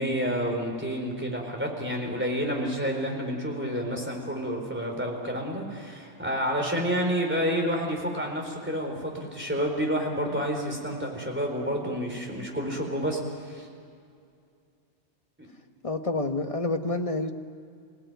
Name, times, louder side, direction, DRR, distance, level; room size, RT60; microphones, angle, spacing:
voice 1, 0.0-13.7 15.4-15.5, equal, 10° right, 0 dB, 4.3 m, -29 dB
voice 2, 15.8-17.3, left 2 dB, 30° left, 5 dB, 1.3 m, -28 dB
26.0 x 18.0 x 9.3 m, 2.4 s
omnidirectional pair, 1.2 m